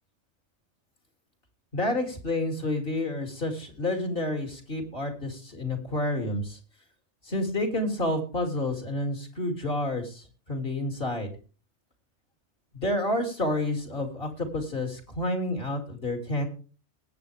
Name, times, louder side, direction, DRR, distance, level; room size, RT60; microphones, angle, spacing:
voice 1, 1.7-6.6 7.2-11.3 12.7-16.5, left 1 dB, 50° left, 4 dB, 2.9 m, -29 dB
20.5 x 8.4 x 3.4 m, 0.36 s
omnidirectional pair, 1.3 m